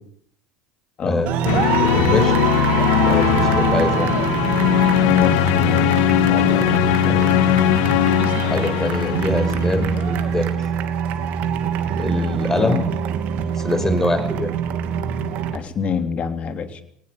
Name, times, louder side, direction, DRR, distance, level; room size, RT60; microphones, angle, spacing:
voice 1, 1.0-2.3 3.1-4.1 6.4-7.3 8.4-10.7 12.0-12.8 13.6-14.5, left 1 dB, 15° left, 10 dB, 5.6 m, -24 dB
sound 1, 1.3-15.6, right 8 dB, 55° right, 2.7 m, -24 dB
sound 2, 1.4-10.3, left 11 dB, 65° left, 1.8 m, -19 dB
voice 2, 5.0-6.0 6.3-7.2 7.7-7.8 12.5-12.8 15.5-16.8, left 6 dB, 40° left, 7 dB, 3.4 m, -26 dB
23.0 x 19.0 x 6.8 m, 0.66 s
hypercardioid pair, 80°, 3 cm